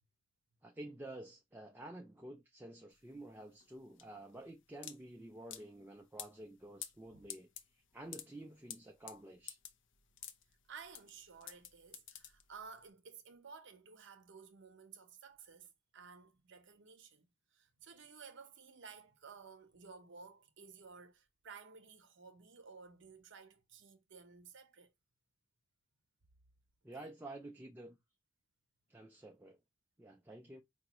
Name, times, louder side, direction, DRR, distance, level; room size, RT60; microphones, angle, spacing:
voice 1, 0.6-9.6 26.8-28.0 28.9-29.6 30.0-30.6, right 1 dB, 10° right, 0.3 m, -51 dB
sound 1, 2.9-12.8, left 9 dB, 60° left, 0.5 m, -51 dB
voice 2, 10.7-24.9 27.0-27.1, right 5 dB, 60° right, 0.7 m, -55 dB
5.0 x 2.3 x 2.9 m
head